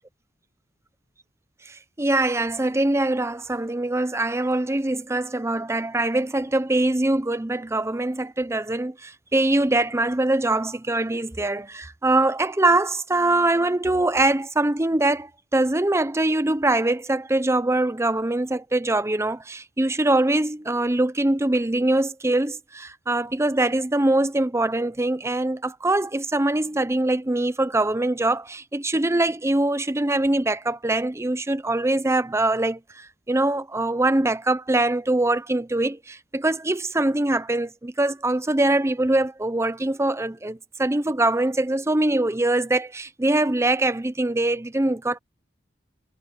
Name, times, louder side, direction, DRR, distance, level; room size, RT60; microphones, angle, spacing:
voice 1, 1.7-45.2, right 2 dB, 15° right, 0.7 m, -23 dB
head